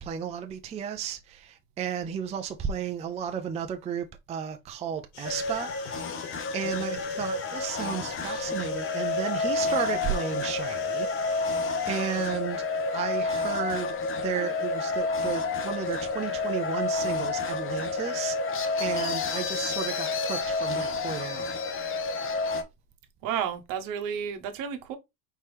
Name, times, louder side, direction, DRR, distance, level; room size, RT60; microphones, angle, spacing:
voice 1, 0.0-12.7 12.9-18.4 18.8-21.6, right 8 dB, 20° right, 0.4 m, -34 dB
sound 1, 5.1-12.3, left 6 dB, 85° left, 2.8 m, -46 dB
sound 2, 5.2-22.6, left 3 dB, 30° left, 0.9 m, -30 dB
voice 2, 23.2-25.0, right 8 dB, 55° right, 1.0 m, -31 dB
4.4 x 3.5 x 3.1 m
supercardioid pair, 115°, 39 cm